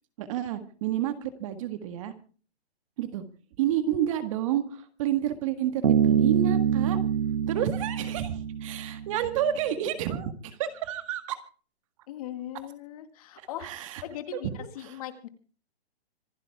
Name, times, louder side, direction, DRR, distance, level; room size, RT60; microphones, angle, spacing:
voice 1, 0.2-2.1 3.0-3.2 3.6-7.0 7.5-11.4 13.6-14.0 14.3-14.9, right 11 dB, 30° right, 9 dB, 1.7 m, -30 dB
Bass guitar, 5.8-9.4, right 7 dB, 85° right, 2.1 m, -25 dB
voice 2, 12.1-15.3, left 12 dB, 35° left, 9 dB, 2.0 m, -40 dB
26.0 x 11.5 x 3.5 m, 0.40 s
hypercardioid pair, 160°, 32 cm